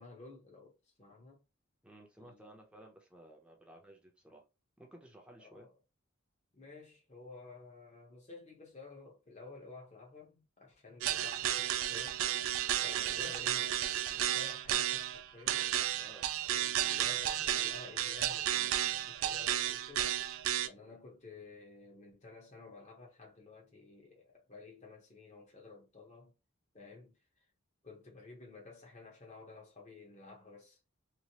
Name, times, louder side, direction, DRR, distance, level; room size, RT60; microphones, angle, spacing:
voice 1, 0.0-1.4 2.2-2.6 5.4-5.8 6.5-12.2 12.8-13.8 14.2-15.7 16.5-20.1 20.6-26.3 26.7-27.2 27.8-30.8, left 3 dB, 35° left, 0.8 m, -53 dB
voice 2, 1.8-4.4 4.8-5.7 12.9-13.3 16.0-16.3 20.8-21.0, right 1 dB, 5° right, 0.6 m, -55 dB
sound 1, 11.0-20.7, right 12 dB, 85° right, 0.3 m, -33 dB
3.1 x 2.0 x 2.8 m
head